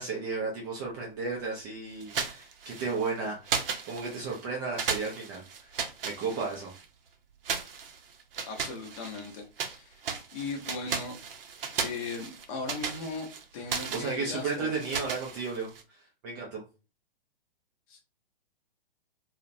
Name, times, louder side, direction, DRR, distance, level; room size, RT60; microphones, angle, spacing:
voice 1, 0.0-3.6 3.9-5.8 6.0-6.7 13.9-16.6, right 4 dB, 20° right, 0.3 m, -34 dB
sound 1, 2.0-3.1 3.5-4.4 4.8-6.9 7.4-9.8 10.0-15.8, right 6 dB, 65° right, 0.6 m, -35 dB
voice 2, 8.5-11.2 11.8-13.3 13.5-14.7 17.9-18.0, left 3 dB, 35° left, 0.7 m, -38 dB
2.3 x 2.1 x 2.6 m
figure-of-eight pair, 120°, 30 cm